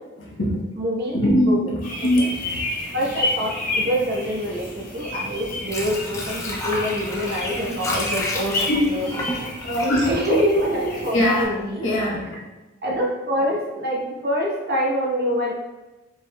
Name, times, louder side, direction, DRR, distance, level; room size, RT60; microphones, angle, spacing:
voice 1, 0.2-0.6 1.1-2.6 8.7-8.8 9.6-10.1 11.1-11.5 11.8-12.3, equal, 70° left, -4 dB, 1.1 m, -21 dB
voice 2, 0.7-1.8 2.1-2.3 2.9-9.1 10.0-11.9 12.8-15.5, equal, 50° right, -2 dB, 0.9 m, -25 dB
sound 1, 1.8-11.4, left 2 dB, 45° left, 1.2 m, -31 dB
Water / Sink (filling or washing), 5.3-11.2 11.6-11.7, left 1 dB, 15° left, 0.5 m, -31 dB
4.4 x 3.9 x 2.2 m, 1.1 s
head